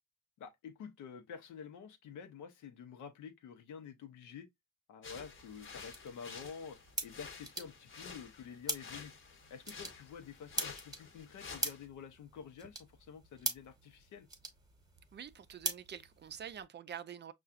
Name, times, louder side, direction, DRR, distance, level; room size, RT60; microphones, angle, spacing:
voice 1, 0.4-4.5 4.9-6.8 7.0-9.1 9.5-14.3, left 7 dB, 85° left, 0.8 m, -49 dB
sound 1, 5.0-11.9, left 5 dB, 40° left, 0.9 m, -51 dB
sound 2, 5.1-16.6, right 2 dB, 15° right, 1.0 m, -44 dB
voice 2, 15.1-17.3, right 8 dB, 35° right, 0.4 m, -46 dB
5.5 x 2.4 x 2.4 m
cardioid pair, 90°, 30 cm